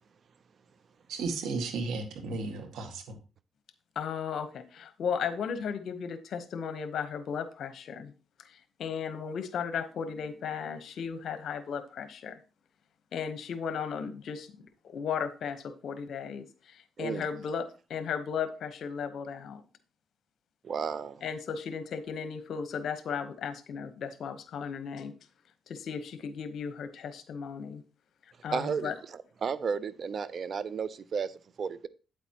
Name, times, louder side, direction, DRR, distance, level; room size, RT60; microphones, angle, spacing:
voice 1, 1.1-3.2, right 3 dB, 80° right, 1.9 m, -34 dB
voice 2, 3.9-8.1 8.4-12.4 13.1-19.6 21.2-25.1 25.7-27.8 28.2-28.9, left 6 dB, 65° left, 1.1 m, -35 dB
voice 3, 20.6-21.2 28.5-28.9 29.4-31.9, right 6 dB, 50° right, 0.6 m, -33 dB
8.9 x 8.2 x 3.0 m
cardioid pair, 90°, 0 cm